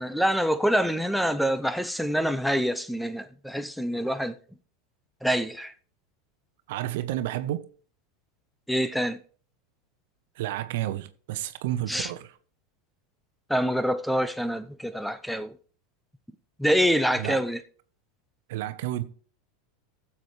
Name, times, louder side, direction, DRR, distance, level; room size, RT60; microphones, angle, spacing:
voice 1, 0.0-4.4 5.2-5.7 8.7-9.2 11.9-12.1 13.5-15.5 16.6-17.6, equal, ahead, 0.7 m, -26 dB
voice 2, 6.7-7.7 10.4-12.3 17.2-17.4 18.5-19.0, right 13 dB, 65° right, 0.9 m, -31 dB
16.0 x 7.2 x 3.2 m
hypercardioid pair, 95°, 0 cm